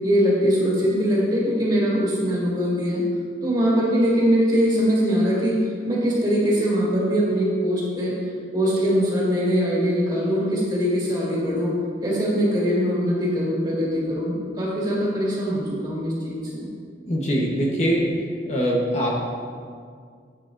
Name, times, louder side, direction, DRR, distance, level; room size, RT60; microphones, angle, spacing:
voice 1, 0.0-3.0 3.4-8.1 8.5-11.7 12.0-16.7, equal, 25° right, -6 dB, 2.1 m, -22 dB
voice 2, 17.1-18.0 18.5-19.2, equal, 40° left, -3 dB, 1.1 m, -22 dB
10.5 x 8.6 x 2.6 m, 2.1 s
head